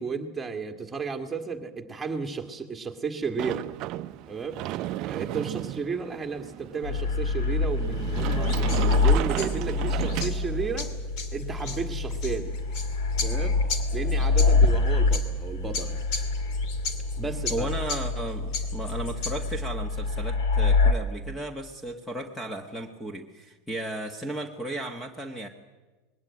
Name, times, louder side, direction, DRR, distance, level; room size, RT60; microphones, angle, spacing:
voice 1, 0.0-3.7 4.3-4.6 5.0-11.0 11.3-12.5 13.2-13.6 13.9-16.1 17.2-17.7, right 5 dB, 10° right, 5 dB, 1.9 m, -33 dB
Sliding door, 3.4-10.9, right 15 dB, 45° right, 0.6 m, -34 dB
sound 1, 6.8-20.9, left 3 dB, 85° left, 2.6 m, -26 dB
sound 2, 8.4-19.5, left 4 dB, 50° left, 2.5 m, -38 dB
voice 2, 17.5-25.5, right 1 dB, 10° left, 6 dB, 1.4 m, -35 dB
20.5 x 17.5 x 9.6 m, 1.2 s
supercardioid pair, 130°, 0 cm